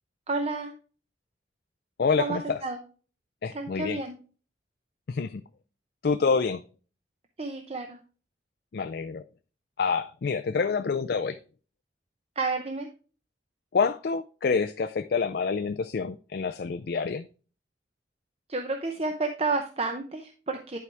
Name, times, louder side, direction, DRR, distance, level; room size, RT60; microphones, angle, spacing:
voice 1, 0.3-0.7 2.2-2.8 3.5-4.1 7.4-8.0 12.4-12.9 18.5-20.8, right 3 dB, 35° right, 0.7 m, -30 dB
voice 2, 2.0-2.6 3.4-4.0 5.1-5.4 6.0-6.6 8.7-9.2 9.8-11.4 13.7-17.3, left 5 dB, 55° left, 0.4 m, -27 dB
11.0 x 4.7 x 3.4 m
head